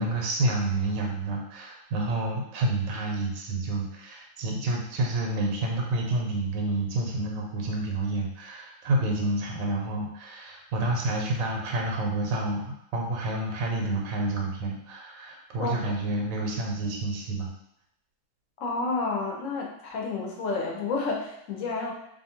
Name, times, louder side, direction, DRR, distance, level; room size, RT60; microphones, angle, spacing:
voice 1, 0.0-17.5, right 2 dB, 85° right, 0 dB, 1.0 m, -29 dB
voice 2, 18.6-21.9, left 3 dB, 70° left, 0 dB, 1.0 m, -30 dB
2.6 x 2.4 x 2.8 m, 0.77 s
omnidirectional pair, 1.4 m